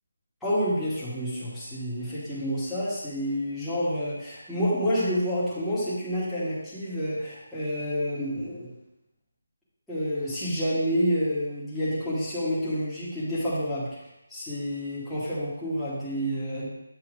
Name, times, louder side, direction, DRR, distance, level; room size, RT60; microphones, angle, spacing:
voice 1, 0.4-8.7 9.9-14.0 14.3-16.7, equal, ahead, -12 dB, 1.4 m, -29 dB
8.1 x 2.8 x 4.9 m, 0.90 s
figure-of-eight pair, 170°, 0 cm